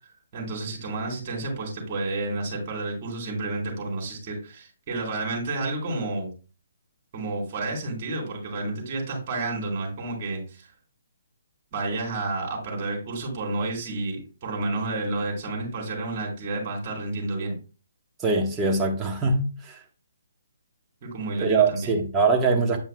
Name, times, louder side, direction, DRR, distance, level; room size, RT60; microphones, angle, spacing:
voice 1, 0.3-6.3 7.1-10.7 11.7-17.5 21.0-21.8, right 2 dB, 35° right, 3.9 m, -30 dB
voice 2, 18.2-19.8 21.4-22.8, right 4 dB, 15° right, 1.4 m, -22 dB
9.3 x 5.5 x 2.3 m
hypercardioid pair, 160°, 0 cm